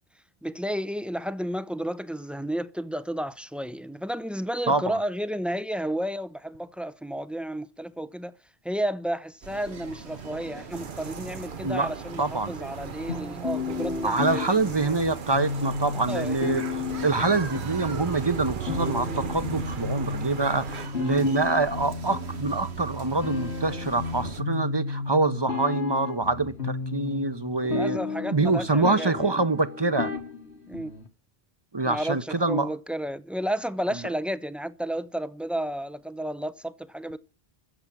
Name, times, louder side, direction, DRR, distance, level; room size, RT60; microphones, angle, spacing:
voice 1, 0.4-8.3 8.6-14.9 16.1-16.4 27.6-29.4 30.7-30.9 31.8-37.2, right 1 dB, ahead, 0.5 m, -32 dB
voice 2, 4.7-5.0 11.6-11.9 12.2-12.5 14.0-28.0 28.3-30.1 31.7-32.7 33.9-34.0, right 3 dB, 25° right, 0.8 m, -25 dB
sound 1, 9.4-24.4, right 5 dB, 85° right, 1.5 m, -41 dB
sound 2, 10.7-20.9, right 6 dB, 55° right, 1.0 m, -38 dB
sound 3, 13.1-31.1, left 4 dB, 85° left, 2.4 m, -33 dB
15.0 x 7.2 x 8.7 m
omnidirectional pair, 1.1 m